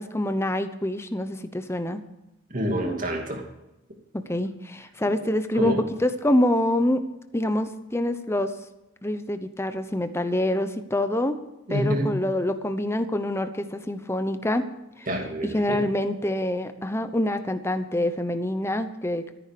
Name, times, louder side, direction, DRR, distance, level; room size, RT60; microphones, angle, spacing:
voice 1, 0.0-2.0 4.1-7.0 7.3-8.5 9.0-11.4 11.7-14.6 15.0-15.1 15.4-19.3, left 1 dB, 15° left, 9 dB, 0.8 m, -26 dB
voice 2, 2.5-3.4 5.5-5.8 11.7-12.1 15.1-15.8, equal, 40° right, 2 dB, 2.5 m, -27 dB
13.5 x 10.0 x 6.8 m, 0.93 s
head